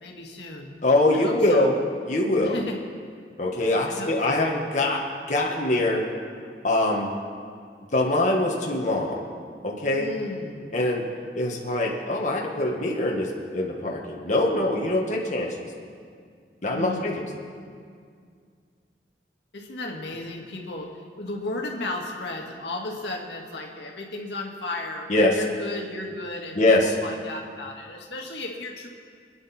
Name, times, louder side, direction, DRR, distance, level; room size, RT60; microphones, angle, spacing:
voice 1, 0.0-0.7 1.1-1.7 2.4-2.8 3.9-4.2 9.9-10.7 16.7-17.2 19.5-20.9 21.2-26.6 27.0-28.9, left 2 dB, 75° left, 1 dB, 1.9 m, -34 dB
voice 2, 0.8-1.7 2.0-2.6 3.4-6.1 6.6-7.1 7.9-9.2 9.6-10.1 10.7-11.1 11.3-15.6 16.6-17.2 25.1-25.4 26.5-26.9, left 2 dB, 45° left, -1 dB, 1.5 m, -23 dB
25.5 x 10.0 x 4.3 m, 2.2 s
head